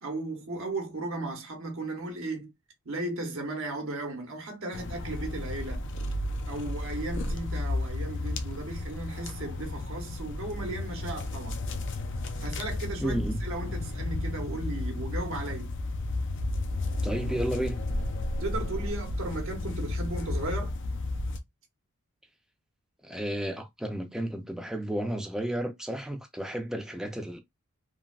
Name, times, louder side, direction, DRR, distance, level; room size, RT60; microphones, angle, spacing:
voice 1, 0.0-2.5 2.8-5.8 6.5-11.6 12.4-15.7 18.4-20.7, right 2 dB, 65° right, 0.9 m, -36 dB
sound 1, 4.7-21.4, left 2 dB, 60° left, 0.5 m, -33 dB
voice 2, 13.0-13.4 17.0-17.9 23.0-27.4, right 1 dB, 5° right, 0.5 m, -32 dB
3.3 x 2.2 x 2.3 m
head